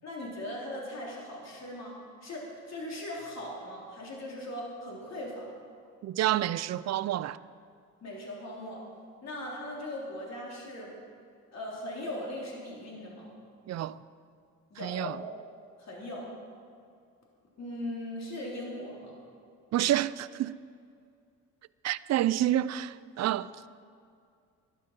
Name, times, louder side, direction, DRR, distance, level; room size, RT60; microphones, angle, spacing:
voice 1, 0.0-5.5 8.0-8.8 9.2-11.0 11.5-13.3 14.7-15.2 15.8-16.3 17.6-19.2, left 1 dB, 60° left, 3.6 m, -39 dB
voice 2, 6.0-7.4 13.7-14.0 14.8-15.2 19.7-20.6 21.8-23.7, right 13 dB, 60° right, 0.5 m, -29 dB
12.0 x 11.0 x 6.0 m
cardioid pair, 90°, 30 cm